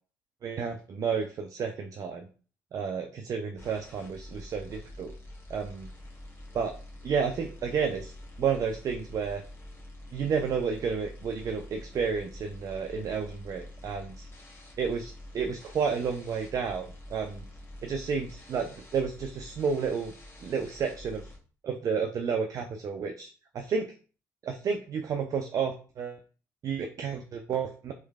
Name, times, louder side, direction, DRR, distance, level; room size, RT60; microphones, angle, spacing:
voice 1, 0.4-2.3 2.7-5.1 5.5-5.9 6.5-6.7 7.0-8.1 8.4-9.4 10.1-14.3 14.8-17.4 17.8-20.1 20.4-21.3 21.6-23.3 23.5-23.9 24.4-26.2 26.6-27.9, right 6 dB, 40° right, 5 dB, 0.4 m, -31 dB
sound 1, 3.6-21.4, left 1 dB, 25° left, 1.3 m, -47 dB
3.1 x 3.0 x 2.2 m, 0.38 s
figure-of-eight pair, 45°, 9 cm